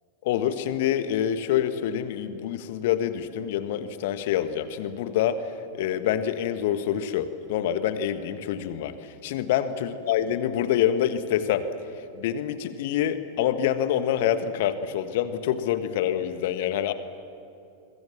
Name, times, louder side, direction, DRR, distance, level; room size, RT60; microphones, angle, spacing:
voice 1, 0.2-11.7 12.1-16.9, left 10 dB, 50° left, 11 dB, 1.5 m, -26 dB
26.5 x 23.0 x 7.3 m, 2.6 s
figure-of-eight pair, 90°, 0 cm